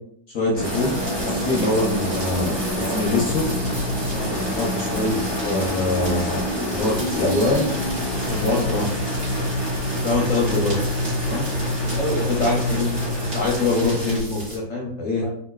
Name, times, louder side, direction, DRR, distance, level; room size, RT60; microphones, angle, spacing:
voice 1, 0.3-1.0 1.2-3.4 4.5-5.2 5.4-6.4 6.6-7.7 8.3-8.9 10.0-10.8 11.2-11.4 12.3-13.0 13.3-15.2, left 2 dB, 65° left, -3 dB, 0.8 m, -24 dB
sound 1, 0.5-14.2, equal, 15° right, 1.0 m, -26 dB
sound 2, 0.6-14.6, equal, 55° right, 1.8 m, -35 dB
voice 2, 2.7-3.1 4.1-4.4 11.5-12.3 15.1-15.3, right 1 dB, 5° left, -4 dB, 0.3 m, -31 dB
3.7 x 2.5 x 2.3 m, 0.66 s
omnidirectional pair, 1.9 m